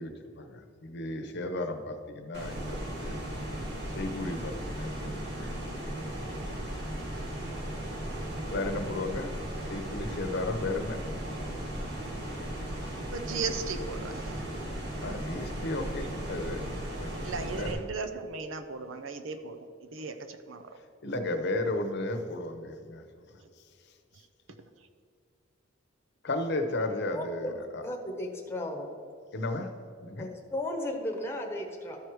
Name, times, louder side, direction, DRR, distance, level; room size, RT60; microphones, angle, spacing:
voice 1, 0.0-3.2 3.9-5.5 8.5-9.3 9.7-11.0 15.0-16.6 17.0-17.8 21.0-23.4 26.2-27.8 29.3-29.7 30.0-30.3, left 2 dB, 60° left, 6 dB, 0.9 m, -34 dB
sound 1, 2.3-17.7, right 1 dB, 55° right, 1.8 m, -36 dB
voice 2, 13.1-14.5 17.2-20.8, right 5 dB, 70° right, 7 dB, 0.6 m, -37 dB
voice 3, 27.1-28.9 30.2-32.0, left 1 dB, 15° left, 1 dB, 1.1 m, -35 dB
13.5 x 4.7 x 4.7 m, 2.3 s
head